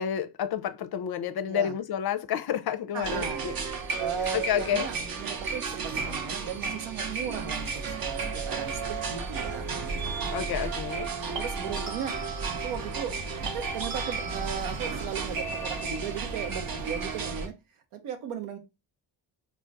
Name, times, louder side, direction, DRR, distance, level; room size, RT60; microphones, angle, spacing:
voice 1, 0.0-3.5 4.3-4.9 10.3-11.1, left 9 dB, 50° left, 0.5 m, -30 dB
voice 2, 1.5-1.8 2.9-3.4 3.9-9.7 11.1-12.2 12.6-17.5 17.9-18.6, right 7 dB, 80° right, 0.7 m, -37 dB
sound 1, 3.0-17.5, right 5 dB, 45° right, 0.7 m, -33 dB
sound 2, 6.4-6.7 11.4-13.2 13.5-16.3, right 3 dB, 60° right, 1.1 m, -41 dB
2.3 x 2.1 x 3.9 m
supercardioid pair, 45°, 49 cm